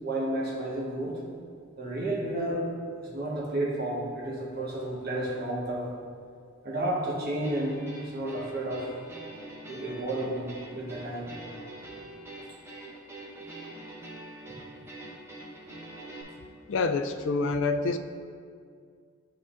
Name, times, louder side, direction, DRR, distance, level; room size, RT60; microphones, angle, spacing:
voice 1, 0.0-1.2 1.8-2.6 3.0-5.9 6.6-7.8 8.1-8.9 9.7-11.3, right 1 dB, 50° right, -4 dB, 1.3 m, -31 dB
sound 1, 7.4-16.2, right 1 dB, 15° right, 0.8 m, -44 dB
voice 2, 16.7-18.0, left 3 dB, 60° left, 8 dB, 0.3 m, -27 dB
11.0 x 3.8 x 2.5 m, 2.2 s
head